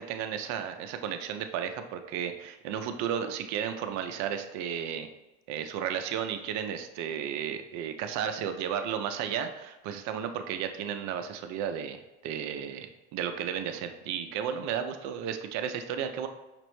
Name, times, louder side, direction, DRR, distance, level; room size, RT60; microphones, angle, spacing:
voice 1, 0.0-5.1 5.5-12.0 12.2-16.3, right 8 dB, 55° right, 7 dB, 0.5 m, -33 dB
5.8 x 2.0 x 3.1 m, 1.1 s
supercardioid pair, 95°, 35 cm